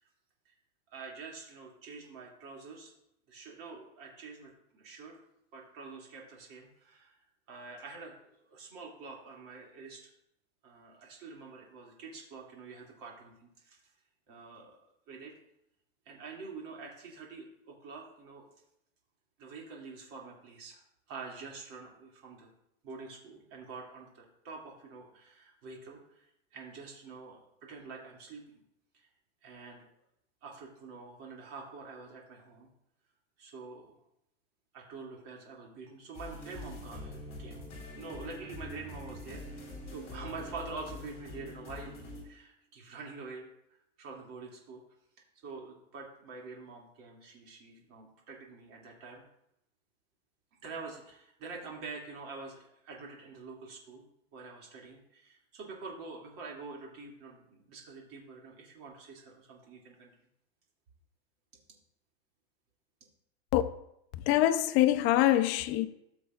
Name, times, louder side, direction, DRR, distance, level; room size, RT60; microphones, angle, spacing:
voice 1, 0.9-2.9 3.3-5.2 5.5-7.2 7.5-8.1 8.5-10.1 10.6-13.8 14.3-14.8 15.1-15.3 16.1-18.5 19.4-22.5 22.8-26.2 26.5-28.6 28.9-29.1 29.4-29.9 30.4-32.7 33.4-33.9 34.7-41.9 42.2-43.5 44.0-44.8 45.4-49.2 50.6-60.1, right 4 dB, 45° right, 2.6 m, -46 dB
sound 1, 36.1-42.2, left 1 dB, 20° left, 3.2 m, -44 dB
voice 2, 64.3-65.9, left 14 dB, 35° left, 0.5 m, -24 dB
13.5 x 6.9 x 2.5 m
supercardioid pair, 155°, 34 cm